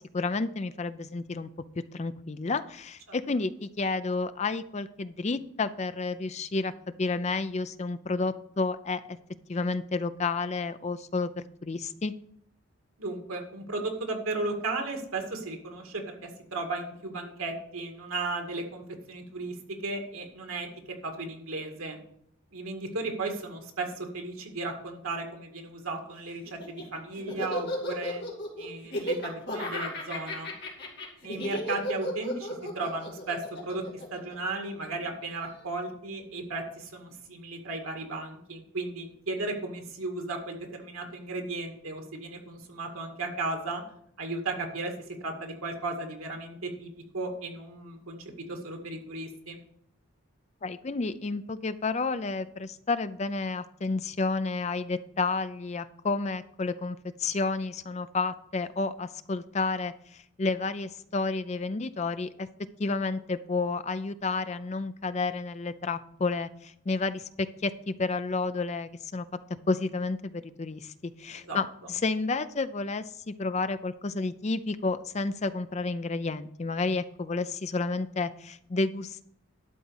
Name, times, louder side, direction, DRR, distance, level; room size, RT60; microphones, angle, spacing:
voice 1, 0.0-1.5 1.9-6.7 7.0-9.2 9.5-12.1 50.6-62.5 62.8-69.2 69.7-79.2, left 3 dB, 30° left, 13 dB, 0.4 m, -31 dB
voice 2, 13.0-20.7 21.0-22.0 22.5-28.2 28.6-30.5 31.2-33.8 34.1-43.8 44.2-44.9 45.2-49.6 71.3-71.6, right 2 dB, 90° right, 3 dB, 2.0 m, -35 dB
Laughter, 26.5-34.9, equal, 50° left, 2.6 m, -34 dB
12.0 x 4.2 x 7.9 m, 0.71 s
head